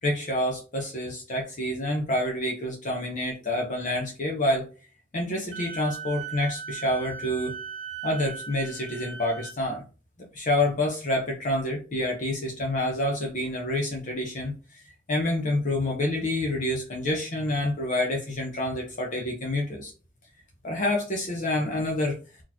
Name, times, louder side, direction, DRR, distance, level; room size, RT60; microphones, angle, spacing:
voice 1, 0.0-4.7 5.1-7.5 8.0-9.8 10.2-14.8 15.1-19.9 20.6-22.2, left 1 dB, 45° left, 0 dB, 0.9 m, -28 dB
Wind instrument woodwind instrument, 5.5-9.6, right 5 dB, 35° right, 1.2 m, -38 dB
4.1 x 3.1 x 2.8 m, 0.33 s
head